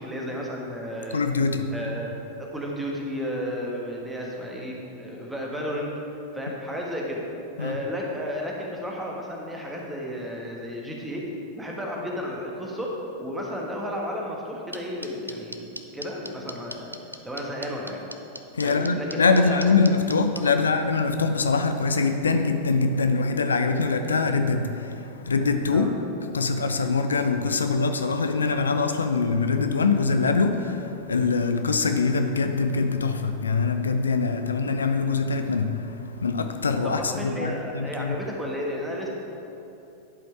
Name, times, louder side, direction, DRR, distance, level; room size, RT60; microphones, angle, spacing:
voice 1, 0.0-1.2 1.7-5.9 6.3-7.2 7.6-17.0 17.2-18.0 18.6-19.6 20.6-20.7 25.7-25.9 36.8-39.1, equal, 5° right, -2 dB, 1.4 m, -33 dB
voice 2, 1.1-1.7 7.6-7.8 18.5-25.9 26.3-38.2, left 4 dB, 75° left, 7 dB, 0.4 m, -23 dB
sound 1, 14.7-20.4, equal, 90° right, 0.4 m, -36 dB
11.0 x 5.1 x 4.6 m, 2.8 s
figure-of-eight pair, 90°, 0 cm